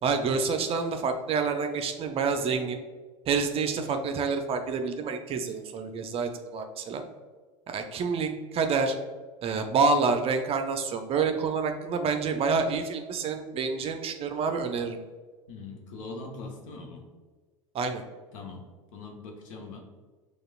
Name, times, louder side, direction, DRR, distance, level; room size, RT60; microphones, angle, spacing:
voice 1, 0.0-2.8 3.3-7.0 7.7-8.9 9.4-15.0 17.7-18.0, right 4 dB, 35° right, 6 dB, 0.5 m, -28 dB
voice 2, 15.5-17.0 18.3-18.6 18.9-19.8, left 3 dB, 65° left, 2 dB, 0.9 m, -41 dB
6.4 x 2.3 x 2.3 m, 1.4 s
hypercardioid pair, 85°, 17 cm